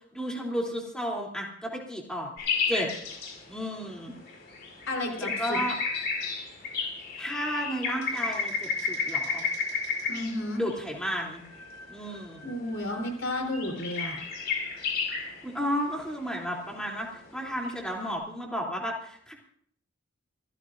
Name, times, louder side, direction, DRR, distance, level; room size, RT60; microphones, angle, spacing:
voice 1, 0.1-2.3 2.7-2.9 3.5-4.1 5.2-5.7 7.2-9.4 10.6-11.4 11.9-12.4 15.4-19.3, equal, 5° left, -2 dB, 3.1 m, -32 dB
sound 1, 2.4-18.1, left 5 dB, 50° left, 5.4 m, -33 dB
voice 2, 4.9-5.6 10.1-10.6 12.4-14.2, left 1 dB, 70° left, 0 dB, 3.9 m, -32 dB
26.5 x 15.0 x 2.6 m, 0.67 s
head